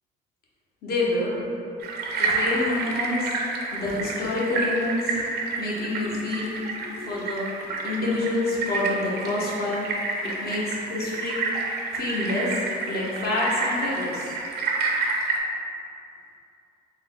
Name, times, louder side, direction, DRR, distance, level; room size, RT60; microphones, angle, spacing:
voice 1, 0.8-1.5 2.2-3.3 3.7-5.2 5.6-6.5 6.8-7.5 7.8-9.9 10.2-11.4 11.9-12.5 12.9-14.3, left 2 dB, 60° left, -6 dB, 1.0 m, -27 dB
sound 1, 1.8-15.4, right 3 dB, 65° right, 0.5 m, -29 dB
3.7 x 2.2 x 3.7 m, 2.6 s
cardioid pair, 95°, 18 cm